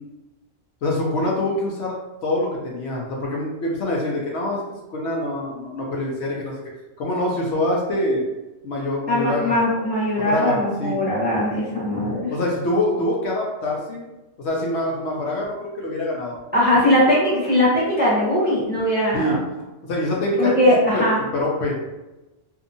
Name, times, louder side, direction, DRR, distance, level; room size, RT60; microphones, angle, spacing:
voice 1, 0.8-1.9 2.2-4.6 4.9-6.6 7.0-8.2 8.6-9.6 10.2-10.9 12.3-14.1 14.4-16.4 19.1-19.4 19.9-20.5 20.9-21.0 21.3-21.8, left 1 dB, 65° left, -3 dB, 0.9 m, -25 dB
voice 2, 9.1-12.3 16.5-19.4 20.4-21.2, left 1 dB, 10° right, -8 dB, 0.7 m, -20 dB
2.7 x 2.3 x 2.5 m, 1.0 s
omnidirectional pair, 1.3 m